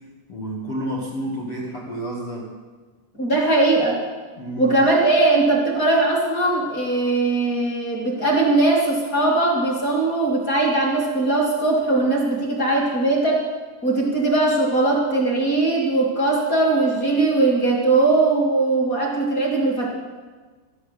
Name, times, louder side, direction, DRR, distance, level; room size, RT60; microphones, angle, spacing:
voice 1, 0.3-2.5 4.4-4.9, equal, 50° left, -3 dB, 1.7 m, -30 dB
voice 2, 3.2-4.0 4.6-13.4 13.8-19.9, right 2 dB, 25° left, -3 dB, 2.0 m, -20 dB
14.0 x 12.0 x 6.6 m, 1.4 s
omnidirectional pair, 5.5 m